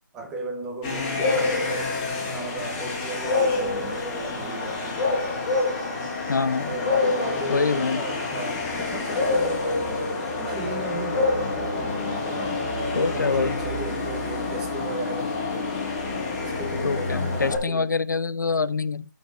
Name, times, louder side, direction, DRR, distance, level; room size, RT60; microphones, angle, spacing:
voice 1, 0.1-5.0 6.5-15.8 16.4-17.9, right 2 dB, 5° right, 0.6 m, -36 dB
sound 1, 0.8-17.6, left 3 dB, 15° left, 1.8 m, -27 dB
voice 2, 6.3-6.8 7.5-8.0 13.0-13.6 16.8-19.0, left 4 dB, 65° left, 0.5 m, -25 dB
12.5 x 5.2 x 3.1 m
hypercardioid pair, 170°, 11 cm